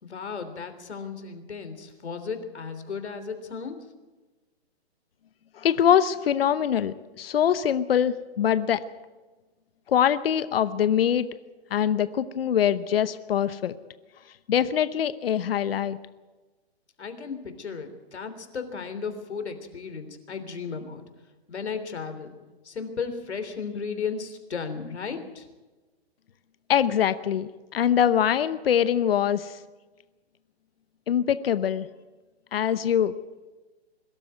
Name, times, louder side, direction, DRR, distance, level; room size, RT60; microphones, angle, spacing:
voice 1, 0.0-3.8 17.0-21.0 21.5-22.3 22.6-25.4, left 5 dB, 90° left, 8 dB, 3.4 m, -35 dB
voice 2, 5.6-8.8 9.9-11.3 11.7-13.7 14.5-16.0 26.7-29.6 31.1-31.9 32.5-33.1, left 9 dB, 60° left, 13 dB, 0.9 m, -23 dB
21.5 x 13.0 x 9.5 m, 1.2 s
hypercardioid pair, 165°, 33 cm